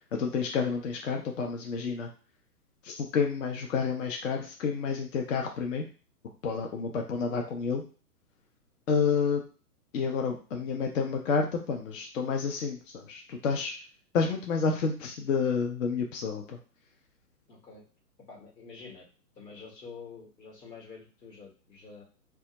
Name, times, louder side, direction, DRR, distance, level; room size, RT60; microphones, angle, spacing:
voice 1, 0.1-2.1 2.8-5.8 6.4-7.8 8.9-9.4 9.9-13.8 14.1-16.6, left 5 dB, 55° left, 3 dB, 0.5 m, -29 dB
voice 2, 17.5-17.8 18.3-19.1 19.4-22.0, left 5 dB, 85° left, 0 dB, 1.2 m, -47 dB
2.2 x 2.0 x 2.8 m, 0.38 s
hypercardioid pair, 130°, 48 cm